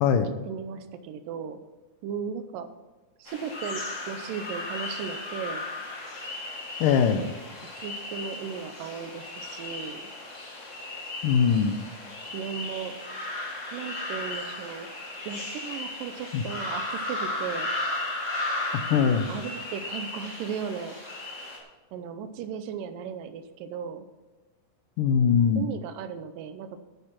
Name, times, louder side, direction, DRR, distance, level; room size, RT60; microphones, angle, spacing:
voice 1, 0.4-1.6 2.0-2.7 3.2-5.7 6.9-7.0 7.8-10.1 12.2-13.0 13.7-14.9 15.3-17.7 18.9-21.0 21.9-24.1 25.6-26.8, right 7 dB, 80° right, 10 dB, 2.4 m, -36 dB
sound 1, 3.3-21.6, left 2 dB, 30° left, 1.5 m, -35 dB
voice 2, 6.8-7.3 11.2-11.8 16.3-16.4 18.9-19.3 25.0-25.7, left 7 dB, 80° left, 9 dB, 2.3 m, -21 dB
9.9 x 8.9 x 5.9 m, 1.2 s
omnidirectional pair, 3.9 m